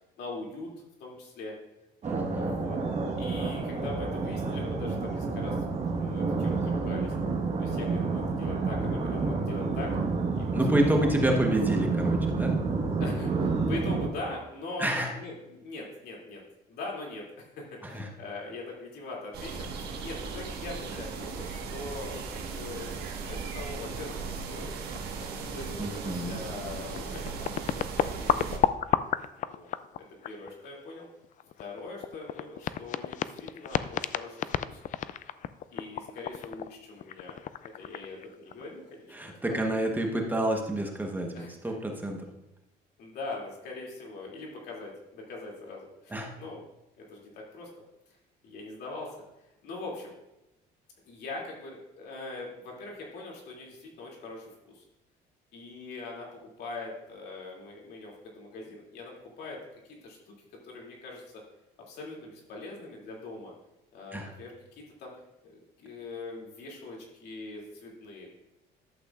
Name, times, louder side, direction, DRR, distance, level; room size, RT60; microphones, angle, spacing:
voice 1, 0.2-0.7 1.0-1.5 2.3-2.8 3.2-5.6 6.0-7.1 7.6-9.9 10.3-11.1 13.0-16.4 16.7-22.9 23.3-24.7 25.5-28.6 29.4-29.7 30.0-31.1 31.6-34.8 35.7-37.4 37.8-39.6 41.3-41.7 43.0-46.6 47.0-47.7 48.4-49.2 49.6-50.1 51.0-54.8 55.5-59.6 59.9-60.3 60.6-61.2 61.9-63.5 63.9-65.1 65.4-68.3, left 2 dB, 75° left, -2 dB, 2.7 m, -42 dB
voice 2, 2.0-2.6 10.5-12.6 14.8-15.1 17.8-18.1 25.8-26.4 39.1-42.3 46.1-46.3 64.1-64.3, right 1 dB, 10° right, 1 dB, 1.2 m, -28 dB
sound 1, 2.0-14.1, right 4 dB, 40° right, 1.5 m, -29 dB
sound 2, 19.3-28.6, right 5 dB, 70° right, 1.5 m, -37 dB
sound 3, 24.9-25.3 25.6-25.7 26.6-26.7 26.9-30.7 31.0-38.7, left 10 dB, 50° left, 0.4 m, -31 dB
11.5 x 8.0 x 2.5 m, 0.93 s
cardioid pair, 110°, 17 cm